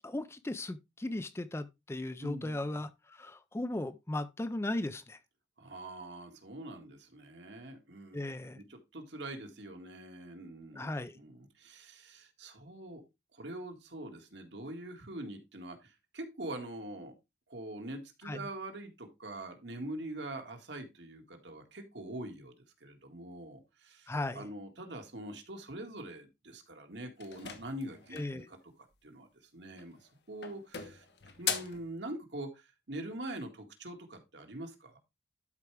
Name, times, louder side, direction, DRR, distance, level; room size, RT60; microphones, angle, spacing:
voice 1, 0.0-5.2 8.1-8.6 10.8-11.2 18.2-18.5 24.1-24.5 28.1-28.5, left 1 dB, 15° left, 0.4 m, -37 dB
voice 2, 2.2-2.8 5.6-10.9 11.1-13.0 13.3-17.1 17.5-28.6 29.0-29.3 29.5-31.1 31.4-35.0, right 1 dB, 75° right, 1.9 m, -44 dB
sound 1, 27.2-28.4 29.7-30.1 30.4-31.9, left 8 dB, 65° left, 1.2 m, -38 dB
12.0 x 4.7 x 3.3 m
head